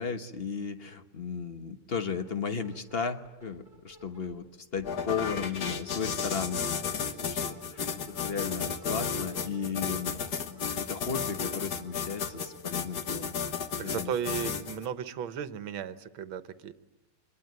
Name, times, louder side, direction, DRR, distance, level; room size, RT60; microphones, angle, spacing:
voice 1, 0.0-4.5 4.7-6.8 7.2-13.3 13.8-14.1, left 6 dB, 35° left, 9 dB, 1.2 m, -35 dB
sound 1, 2.2-2.3 2.6-4.4 4.7-5.7 6.1-12.5, equal, 15° left, 6.6 m, -53 dB
sound 2, 4.8-14.9, left 6 dB, 55° left, 1.8 m, -33 dB
voice 2, 13.8-16.7, right 8 dB, 85° right, 12 dB, 1.9 m, -35 dB
26.0 x 21.5 x 9.5 m, 1.1 s
omnidirectional pair, 2.2 m